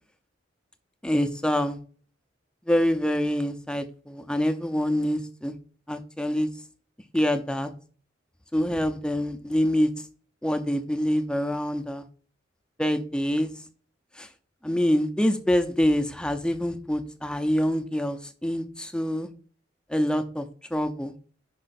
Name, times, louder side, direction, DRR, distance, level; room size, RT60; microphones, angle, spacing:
voice 1, 1.0-1.8 2.7-5.5 5.9-6.5 7.1-7.7 8.5-9.9 10.4-12.0 12.8-13.5 14.2-14.3 14.6-19.3 19.9-20.5 20.7-21.1, equal, 5° left, 8 dB, 0.6 m, -25 dB
5.5 x 5.5 x 4.0 m, 0.41 s
head